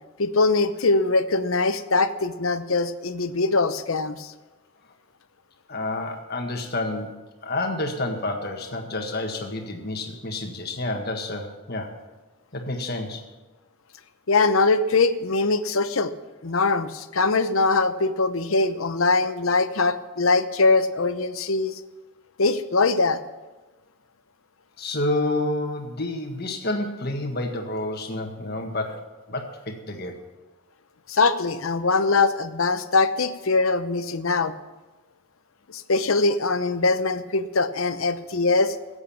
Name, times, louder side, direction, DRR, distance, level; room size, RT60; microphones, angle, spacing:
voice 1, 0.2-4.3 14.3-16.1 16.4-21.7 22.4-23.2 31.1-34.5 35.7-38.8, left 3 dB, 80° left, 11 dB, 0.8 m, -22 dB
voice 2, 5.7-7.1 7.4-11.9 12.5-13.2 24.8-30.1, left 2 dB, 50° left, 4 dB, 1.7 m, -29 dB
15.5 x 8.3 x 7.2 m, 1.1 s
head